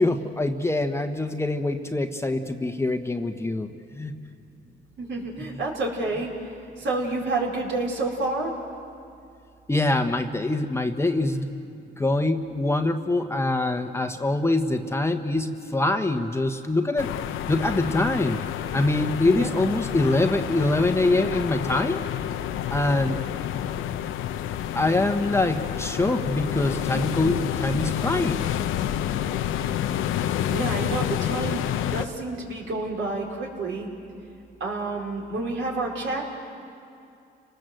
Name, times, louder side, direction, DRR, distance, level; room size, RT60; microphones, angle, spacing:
voice 1, 0.0-4.1 9.7-11.6 12.0-17.1 17.5-18.4 18.7-22.0 22.7-23.1 24.7-28.4, left 2 dB, 15° left, 6 dB, 1.2 m, -24 dB
voice 2, 5.0-6.3 6.8-8.5 19.2-19.6 30.5-31.6 31.9-33.9 34.6-36.2, right 3 dB, 70° right, -1 dB, 4.7 m, -29 dB
sound 1, 17.0-32.1, left 11 dB, 85° left, 0.8 m, -29 dB
30.0 x 19.0 x 7.8 m, 2.6 s
cardioid pair, 90°, 20 cm